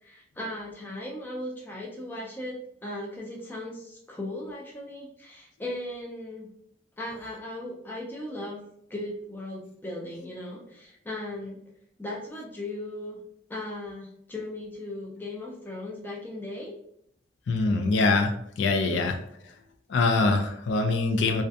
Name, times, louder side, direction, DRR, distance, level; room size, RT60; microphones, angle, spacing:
voice 1, 0.0-2.6 2.8-6.5 7.0-8.6 8.9-11.6 12.0-13.2 13.5-16.7, left 1 dB, 10° left, -3 dB, 0.4 m, -37 dB
voice 2, 17.5-19.2 19.9-21.4, left 3 dB, 75° left, 5 dB, 0.3 m, -24 dB
2.3 x 2.2 x 2.6 m, 0.72 s
head